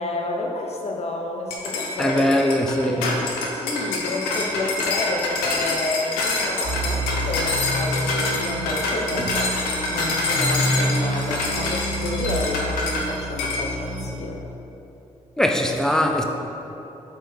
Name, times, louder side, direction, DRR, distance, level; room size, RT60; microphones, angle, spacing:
voice 1, 0.0-2.3 2.9-3.0 3.5-9.5 9.9-14.4, left 2 dB, 45° left, 0 dB, 1.1 m, -30 dB
sound 1, 1.5-13.1 13.4-13.6, left 2 dB, 90° left, 0.9 m, -26 dB
voice 2, 2.0-3.2 15.4-16.2, left 1 dB, 5° left, 3 dB, 1.0 m, -21 dB
sound 2, 6.6-14.0, right 1 dB, 60° right, 1.6 m, -28 dB
7.9 x 4.6 x 5.5 m, 3.0 s
hypercardioid pair, 40°, 14 cm